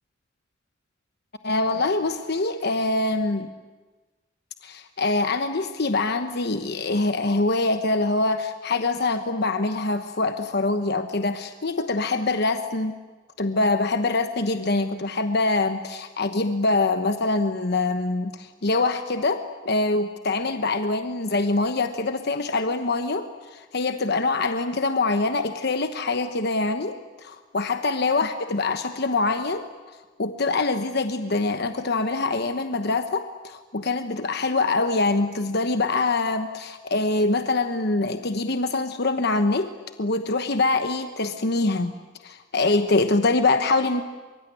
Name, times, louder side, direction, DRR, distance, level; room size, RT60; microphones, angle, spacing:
voice 1, 1.4-3.5 4.6-12.9 13.4-29.6 30.2-39.7 40.0-42.0 42.2-44.0, left 3 dB, 60° left, 8 dB, 1.1 m, -24 dB
23.5 x 23.0 x 10.0 m, 1.3 s
head